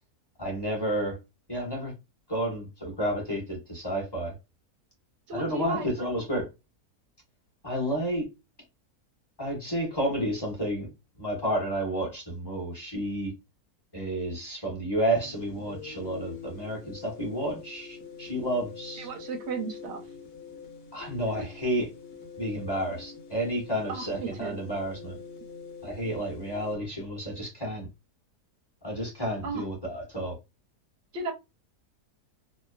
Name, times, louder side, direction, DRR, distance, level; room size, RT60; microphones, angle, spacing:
voice 1, 0.4-1.2 1.5-1.9 2.3-4.3 5.3-6.5 7.6-8.3 9.4-10.9 11.2-13.3 13.9-19.1 20.9-21.9 22.4-25.2 25.8-27.9 28.8-30.3, right 1 dB, 20° left, 1.0 m, -31 dB
voice 2, 5.3-6.1 18.9-20.0 23.9-24.6 29.4-29.6 31.1-31.3, right 3 dB, 60° right, 0.7 m, -34 dB
sound 1, 15.1-26.8, left 6 dB, 80° left, 1.3 m, -45 dB
3.0 x 2.2 x 2.3 m
omnidirectional pair, 1.6 m